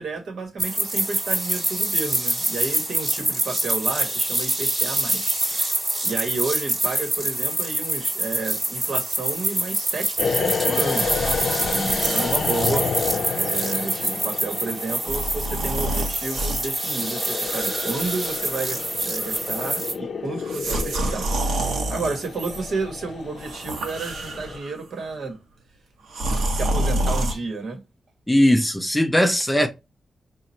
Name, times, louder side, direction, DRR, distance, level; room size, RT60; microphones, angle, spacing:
voice 1, 0.0-5.8 6.0-13.0 13.3-25.4 26.5-27.8, right 3 dB, 65° right, 1.3 m, -31 dB
sound 1, 0.6-19.9, right 1 dB, 25° right, 1.5 m, -26 dB
sound 2, 10.2-24.6, left 5 dB, 55° left, 0.5 m, -30 dB
sound 3, 10.9-12.5 13.1-13.3 15.0-16.7 17.4-18.9 19.2-19.6 20.4-22.6 23.4-24.7 26.1-27.3, right 1 dB, 85° right, 1.0 m, -28 dB
voice 2, 28.3-29.7, left 1 dB, 5° left, 0.4 m, -19 dB
4.1 x 2.4 x 4.3 m
wide cardioid pair, 140°, 0 cm